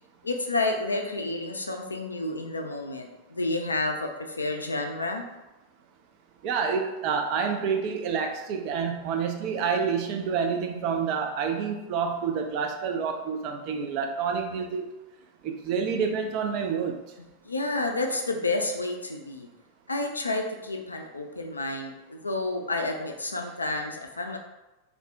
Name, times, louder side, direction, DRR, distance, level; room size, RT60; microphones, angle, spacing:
voice 1, 0.2-5.2 17.4-19.5 19.9-24.4, left 2 dB, 80° left, 3 dB, 0.3 m, -30 dB
voice 2, 6.4-14.8 15.4-17.0, right 6 dB, 45° right, 4 dB, 0.4 m, -28 dB
2.4 x 2.0 x 3.4 m, 1.0 s
figure-of-eight pair, 90°, 0 cm